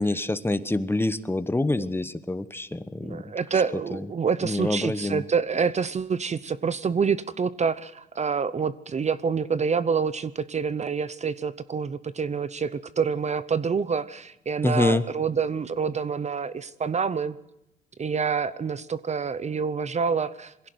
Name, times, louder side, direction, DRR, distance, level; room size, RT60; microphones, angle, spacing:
voice 1, 0.0-3.6 3.9-4.1 4.4-5.2 14.6-15.0, left 2 dB, 10° left, 13 dB, 1.0 m, -26 dB
voice 2, 3.0-17.4 18.0-20.5, right 6 dB, 35° right, 16 dB, 0.8 m, -27 dB
22.0 x 16.0 x 8.0 m, 0.85 s
cardioid pair, 90°, 20 cm